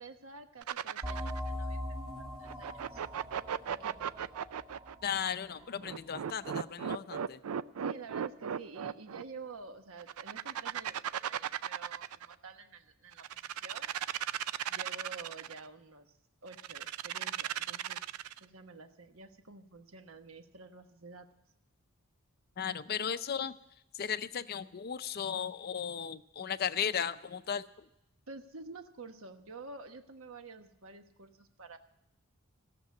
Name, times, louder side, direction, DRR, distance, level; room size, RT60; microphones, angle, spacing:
voice 1, 0.0-3.0 3.7-4.1 7.8-13.9 14.7-16.1 16.4-18.0 18.4-21.3 28.3-31.8, right 3 dB, 65° right, 7 dB, 1.2 m, -49 dB
sound 1, 0.6-1.5 2.5-4.9 5.8-9.2 10.0-12.3 13.1-15.6 16.5-18.4, right 9 dB, 85° right, 0.4 m, -36 dB
sound 2, 1.0-6.3, left 1 dB, 25° right, 2.2 m, -41 dB
voice 2, 5.0-7.4 22.6-23.5 24.0-27.9, left 8 dB, 45° left, 13 dB, 0.5 m, -36 dB
16.5 x 6.9 x 9.3 m, 0.83 s
head